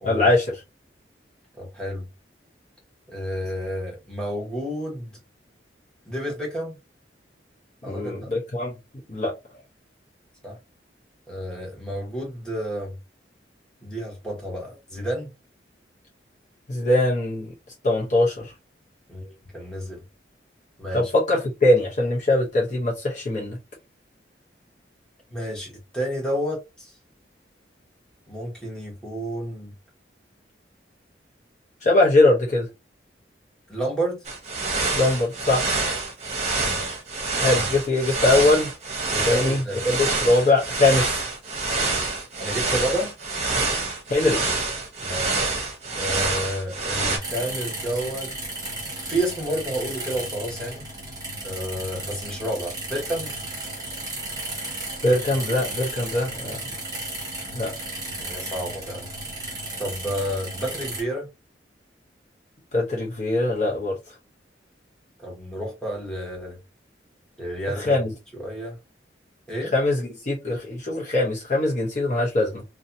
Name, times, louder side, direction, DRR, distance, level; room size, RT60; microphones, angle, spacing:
voice 1, 0.0-0.6 7.9-8.7 9.1-9.3 16.7-17.5 17.8-18.5 20.9-23.6 31.8-32.7 35.0-35.7 37.4-38.7 39.3-41.2 44.1-44.4 55.0-56.6 57.5-57.7 62.7-64.0 67.8-68.1 69.7-72.6, left 2 dB, 45° left, 0.7 m, -21 dB
voice 2, 1.6-2.1 3.1-5.2 6.1-6.7 7.8-8.3 10.4-10.6 11.3-13.0 13.8-15.3 19.1-20.0 20.8-21.1 25.3-26.9 28.3-29.7 33.7-34.2 36.5-37.0 39.1-39.8 42.4-43.1 45.0-45.4 46.0-48.3 49.0-50.8 51.4-53.3 58.2-59.1 59.8-61.3 65.2-66.6 67.4-67.9 68.4-68.8 69.5-69.7, equal, 5° left, 1.0 m, -30 dB
sound 1, 34.2-47.2, right 3 dB, 40° right, 0.8 m, -26 dB
sound 2, 47.2-61.0, right 2 dB, 20° right, 1.1 m, -34 dB
2.6 x 2.2 x 2.6 m
head